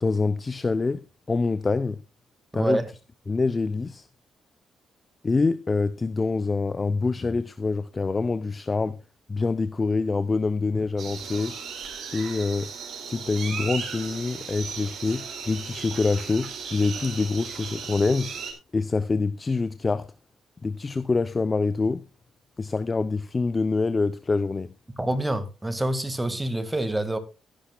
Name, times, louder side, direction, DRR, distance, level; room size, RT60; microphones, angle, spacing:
voice 1, 0.0-1.0 1.3-2.0 2.5-2.8 3.3-4.1 5.2-9.0 9.3-11.6 12.1-12.7 13.1-18.3 18.7-20.1 20.6-22.0 22.6-24.7, left 3 dB, 25° left, 0.6 m, -25 dB
voice 2, 2.5-2.9 25.0-27.2, right 1 dB, 10° right, 1.8 m, -26 dB
sound 1, 11.0-18.5, right 6 dB, 65° right, 4.0 m, -36 dB
15.5 x 11.5 x 2.3 m
cardioid pair, 90°, 0 cm